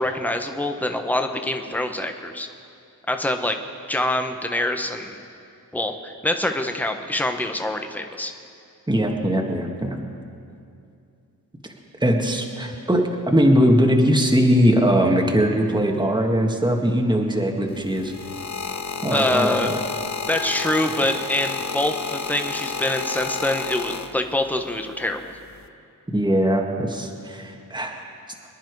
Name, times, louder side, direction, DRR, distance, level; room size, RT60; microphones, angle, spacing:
voice 1, 0.0-2.5 3.1-3.6 3.9-5.2 5.7-8.3 19.1-19.7 20.3-25.3, left 1 dB, 5° left, 5 dB, 1.2 m, -25 dB
voice 2, 8.9-10.0 12.0-18.1 19.0-19.8 21.0-21.1 26.1-28.0, equal, 10° right, 1 dB, 1.8 m, -20 dB
sound 1, 17.7-24.5 25.4-25.7, left 5 dB, 50° left, 0.9 m, -31 dB
24.5 x 10.5 x 4.8 m, 2.5 s
cardioid pair, 55°, 37 cm